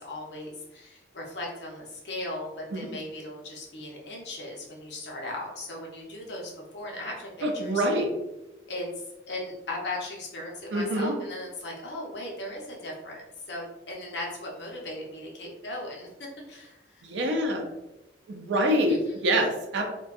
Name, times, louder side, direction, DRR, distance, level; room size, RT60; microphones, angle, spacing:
voice 1, 0.0-7.8 8.7-8.9 9.3-17.0 18.9-19.2, left 1 dB, 70° left, -1 dB, 0.7 m, -38 dB
voice 2, 7.4-8.1 10.7-11.1 17.0-17.7 18.3-19.9, equal, 80° right, 3 dB, 0.5 m, -26 dB
2.6 x 2.2 x 2.3 m, 0.97 s
head